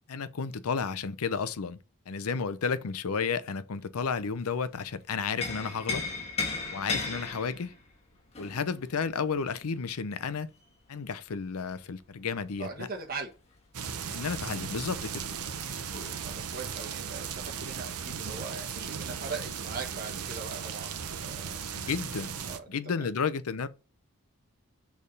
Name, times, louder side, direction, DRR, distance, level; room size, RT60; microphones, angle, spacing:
voice 1, 0.1-1.8 2.1-6.0 6.7-7.8 8.4-10.5 10.9-12.9 14.1-15.3 21.7-22.3 22.7-23.7, left 5 dB, 80° left, 0.6 m, -32 dB
sound 1, 4.0-4.8 5.1-10.6 12.6-18.3 18.6-18.7 19.1-19.8 20.6-20.8, left 4 dB, 30° left, 1.5 m, -38 dB
voice 2, 12.6-13.3 16.2-20.9 21.2-21.6 22.5-23.1, right 4 dB, 40° right, 1.2 m, -40 dB
sound 2, 13.7-22.6, right 7 dB, 85° right, 0.7 m, -37 dB
6.4 x 3.5 x 5.3 m
head